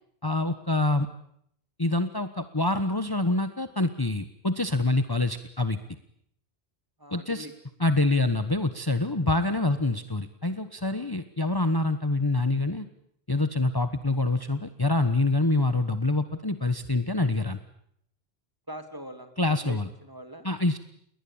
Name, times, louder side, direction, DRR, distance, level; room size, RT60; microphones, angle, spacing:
voice 1, 0.2-1.1 1.8-5.8 7.1-7.5 7.8-12.9 13.3-17.6 19.4-19.9 20.4-20.8, left 2 dB, 20° left, 10 dB, 1.3 m, -26 dB
voice 2, 7.0-7.5 9.1-9.2 9.7-9.8 10.9-11.2 18.7-20.5, right 1 dB, 20° right, 8 dB, 3.2 m, -42 dB
29.0 x 22.0 x 8.8 m, 0.71 s
omnidirectional pair, 1.0 m